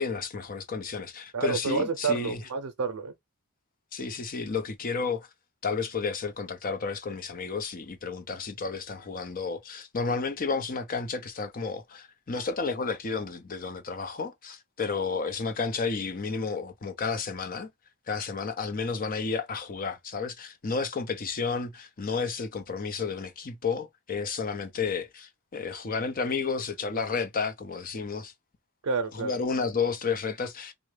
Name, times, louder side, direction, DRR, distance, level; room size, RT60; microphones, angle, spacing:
voice 1, 0.0-2.4 3.9-5.3 5.6-17.7 18.1-28.3 29.1-30.7, left 4 dB, 40° left, 0.6 m, -31 dB
voice 2, 1.3-3.1 28.8-29.3, right 4 dB, 85° right, 0.5 m, -29 dB
3.6 x 2.1 x 3.2 m
head